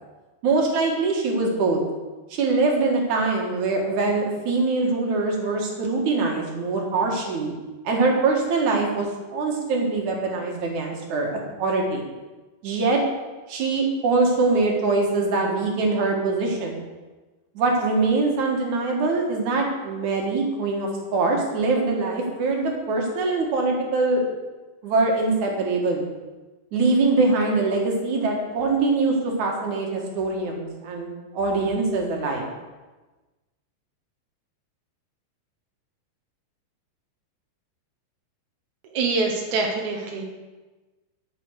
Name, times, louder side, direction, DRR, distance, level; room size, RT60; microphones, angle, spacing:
voice 1, 0.4-1.8 2.3-7.5 7.8-9.1 9.3-12.1 12.6-13.0 13.5-16.9 17.5-24.2 24.8-26.0 26.7-32.5, right 3 dB, 55° right, 0 dB, 2.5 m, -23 dB
voice 2, 38.9-40.2, right 3 dB, 85° right, 1 dB, 1.6 m, -25 dB
11.0 x 7.0 x 6.4 m, 1.2 s
omnidirectional pair, 5.2 m